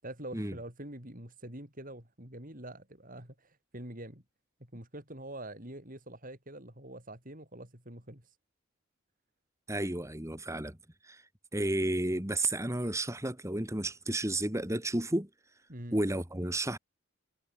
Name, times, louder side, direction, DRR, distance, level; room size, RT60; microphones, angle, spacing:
voice 1, 0.0-4.2 4.7-8.3 15.7-16.0, right 1 dB, 40° right, 6.5 m, -45 dB
voice 2, 9.7-10.8 11.0-11.2 11.5-15.3 15.9-16.8, right 1 dB, 15° right, 2.3 m, -32 dB
head